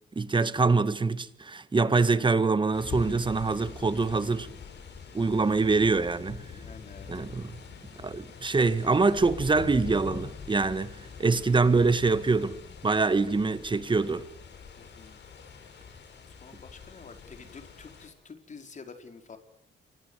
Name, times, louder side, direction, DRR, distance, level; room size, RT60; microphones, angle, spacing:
voice 1, 0.1-4.5 5.1-6.4 7.1-7.6 8.0-12.6 12.8-14.2, right 4 dB, 25° right, 1.7 m, -25 dB
sound 1, 2.7-18.1, left 5 dB, 60° left, 6.4 m, -44 dB
voice 2, 6.5-7.1 14.8-15.2 16.4-19.4, left 5 dB, 40° left, 4.9 m, -48 dB
28.5 x 25.0 x 8.3 m
cardioid pair, 90°, 20 cm